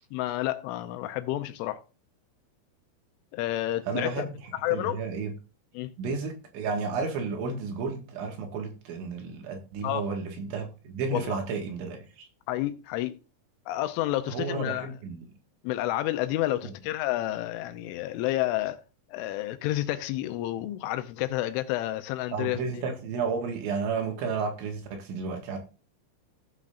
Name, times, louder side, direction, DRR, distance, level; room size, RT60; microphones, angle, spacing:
voice 1, 0.1-1.8 3.3-4.3 4.5-5.0 5.7-5.9 9.8-10.1 11.1-11.4 12.5-13.1 13.7-14.9 15.6-18.8 19.1-22.8, left 15 dB, 80° left, 3.2 m, -30 dB
voice 2, 3.9-4.4 4.7-5.3 6.0-12.3 14.3-15.3 16.6-16.7 22.3-25.6, right 4 dB, 75° right, 4.1 m, -32 dB
16.0 x 7.4 x 2.6 m
omnidirectional pair, 5.6 m